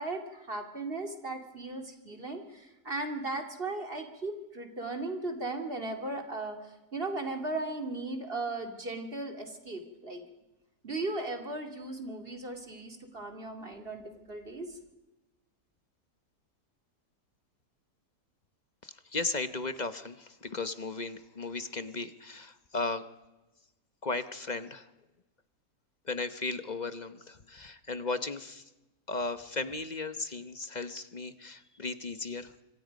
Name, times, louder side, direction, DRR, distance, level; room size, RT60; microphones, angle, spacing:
voice 1, 0.0-10.2 10.8-14.8, right 2 dB, 35° right, 4 dB, 2.6 m, -37 dB
voice 2, 18.8-23.0 24.0-24.9 26.0-28.6 29.1-32.6, left 3 dB, 30° left, 11 dB, 0.9 m, -36 dB
26.0 x 25.5 x 5.2 m, 1.0 s
omnidirectional pair, 1.8 m